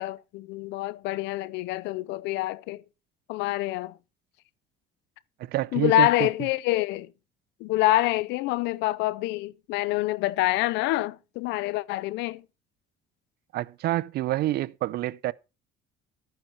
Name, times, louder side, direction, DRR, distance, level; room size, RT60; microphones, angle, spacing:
voice 1, 0.0-2.8 3.3-4.0 5.7-7.1 7.6-12.4, left 16 dB, 85° left, 0.6 m, -26 dB
voice 2, 5.4-6.3 13.5-15.3, right 15 dB, 65° right, 0.6 m, -28 dB
12.0 x 9.1 x 4.5 m
cardioid pair, 110°, 18 cm